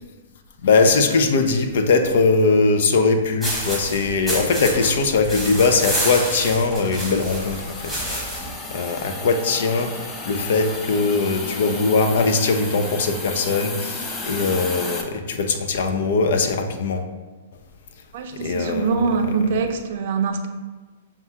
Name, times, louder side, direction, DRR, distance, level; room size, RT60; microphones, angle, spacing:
voice 1, 0.6-7.9 8.2-17.1 18.4-19.0, left 4 dB, 65° left, 6 dB, 0.5 m, -20 dB
sound 1, 3.4-8.5, equal, 5° left, 1.4 m, -28 dB
Hiss, 7.2-15.0, left 3 dB, 20° left, 0.6 m, -33 dB
voice 2, 18.1-20.5, right 5 dB, 60° right, 5 dB, 0.5 m, -23 dB
6.8 x 2.4 x 2.8 m, 1.3 s
hypercardioid pair, 125°, 0 cm